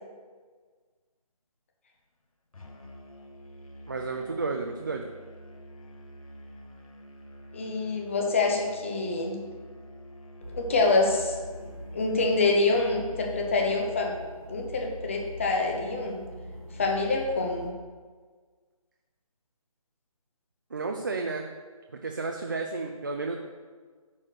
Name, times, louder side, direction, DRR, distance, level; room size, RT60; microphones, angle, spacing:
Musical instrument, 2.5-12.5, equal, 70° left, 1.3 m, -47 dB
voice 1, 3.9-5.1 20.7-21.5 21.9-23.4, right 3 dB, 35° right, 3 dB, 0.5 m, -32 dB
voice 2, 7.5-9.4 10.5-11.4 11.9-14.2 14.5-16.2 16.7-17.7, left 3 dB, 20° left, 2 dB, 0.8 m, -26 dB
sound 1, 10.4-17.7, left 1 dB, 85° right, 2.0 m, -42 dB
9.5 x 4.3 x 6.3 m, 1.5 s
figure-of-eight pair, 165°, 19 cm